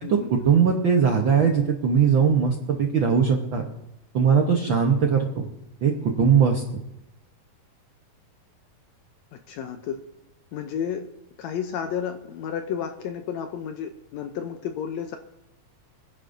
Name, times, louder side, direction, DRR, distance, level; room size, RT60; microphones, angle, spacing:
voice 1, 0.0-3.6 4.1-5.3 5.8-6.6, right 6 dB, 65° right, 1 dB, 1.2 m, -20 dB
voice 2, 9.5-10.0 10.5-11.1 11.4-15.2, left 8 dB, 75° left, 6 dB, 1.7 m, -32 dB
25.5 x 10.5 x 2.7 m, 0.84 s
omnidirectional pair, 3.7 m